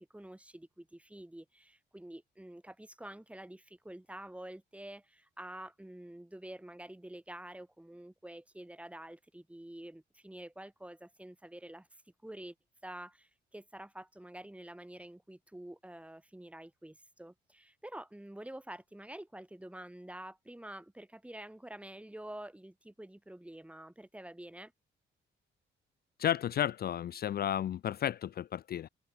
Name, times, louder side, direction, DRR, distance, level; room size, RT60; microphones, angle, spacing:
voice 1, 0.0-11.9 12.2-12.5 12.8-24.7, right 1 dB, 5° right, 2.7 m, -48 dB
voice 2, 26.2-28.9, left 10 dB, 50° left, 0.5 m, -32 dB
cardioid pair, 90°, 20 cm